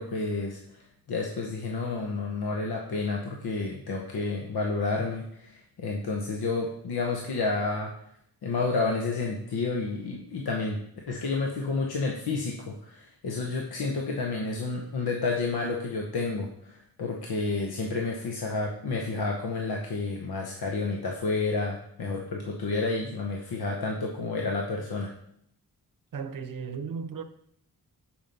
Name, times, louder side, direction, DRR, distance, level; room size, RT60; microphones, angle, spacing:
voice 1, 0.0-7.9 8.4-25.1, left 3 dB, 80° left, 1.0 m, -30 dB
voice 2, 26.1-27.2, right 6 dB, 60° right, 0.8 m, -35 dB
7.2 x 4.5 x 5.2 m
cardioid pair, 75°, 37 cm